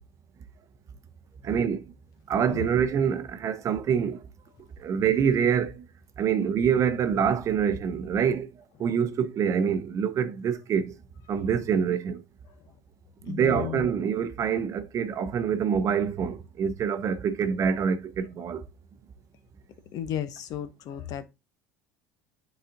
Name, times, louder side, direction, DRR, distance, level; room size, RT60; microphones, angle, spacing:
voice 1, 1.5-1.8 2.3-4.2 4.8-5.7 6.2-8.5 8.8-10.8 11.3-12.2 13.3-18.6, right 7 dB, 40° right, 0.7 m, -25 dB
voice 2, 13.3-13.9 19.9-21.2, left 10 dB, 55° left, 0.7 m, -34 dB
9.9 x 4.1 x 2.6 m
supercardioid pair, 100°, 8 cm